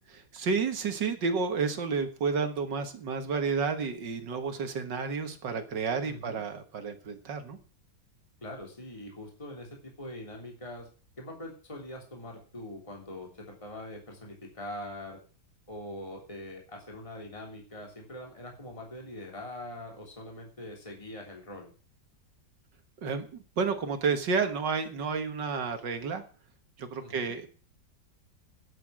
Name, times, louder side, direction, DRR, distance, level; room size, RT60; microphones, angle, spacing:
voice 1, 0.3-7.6 23.0-26.2 26.8-27.5, right 5 dB, 65° right, 8 dB, 2.1 m, -31 dB
voice 2, 6.1-6.4 8.4-10.9 11.2-15.2 15.7-21.7 27.0-27.3, left 1 dB, 15° left, 0 dB, 3.3 m, -43 dB
11.5 x 8.1 x 7.5 m, 0.37 s
omnidirectional pair, 2.1 m